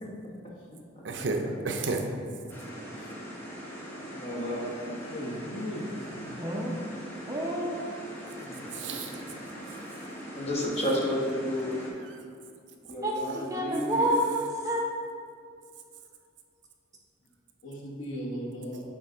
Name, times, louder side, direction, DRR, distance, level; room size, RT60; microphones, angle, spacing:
voice 1, 1.0-2.0 6.1-6.3 8.7-9.2 9.5-9.8, right 3 dB, 65° right, 4 dB, 0.6 m, -32 dB
sound 1, 2.5-11.9, equal, 10° left, 0.9 m, -41 dB
voice 2, 4.1-4.8 10.3-11.8 12.9-14.1, equal, 30° left, -4 dB, 1.1 m, -31 dB
voice 3, 5.0-5.9 8.4-8.9 17.6-18.8, equal, 75° left, -1 dB, 1.1 m, -37 dB
voice 4, 6.4-6.8 7.3-7.8 13.0-14.9, right 1 dB, 15° right, -2 dB, 0.7 m, -29 dB
8.8 x 3.2 x 3.8 m, 2.3 s
head